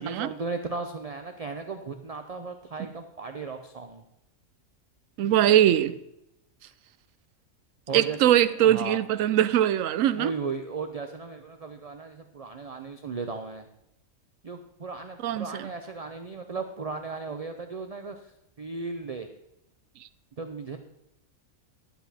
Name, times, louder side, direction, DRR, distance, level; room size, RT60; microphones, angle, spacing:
voice 1, 0.0-4.0 7.9-9.0 10.1-13.7 14.4-18.3 18.6-19.3 20.4-20.8, right 4 dB, 45° right, 6 dB, 0.5 m, -36 dB
voice 2, 5.2-5.9 7.9-10.3 15.2-15.7, right 11 dB, 75° right, 14 dB, 0.9 m, -22 dB
11.0 x 8.3 x 4.2 m, 0.83 s
omnidirectional pair, 1.4 m